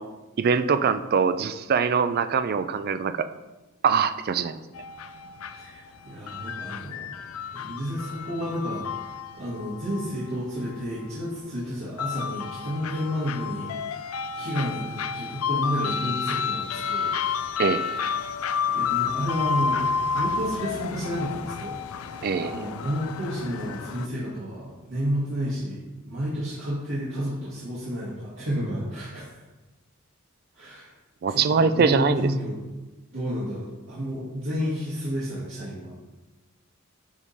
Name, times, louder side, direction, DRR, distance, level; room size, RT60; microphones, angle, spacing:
voice 1, 0.4-3.3 3.8-4.6 17.6-17.8 22.2-22.6 31.2-32.3, right 5 dB, 45° right, 12 dB, 0.4 m, -23 dB
sound 1, 4.7-24.1, left 6 dB, 80° left, 0.4 m, -31 dB
voice 2, 5.5-7.1 7.5-8.9 9.4-13.7 14.4-17.6 18.7-21.8 22.3-25.8 26.0-29.2 30.5-30.9 31.3-32.6 33.1-35.9, equal, 65° right, -10 dB, 1.9 m, -31 dB
9.3 x 3.7 x 4.1 m, 1.1 s
head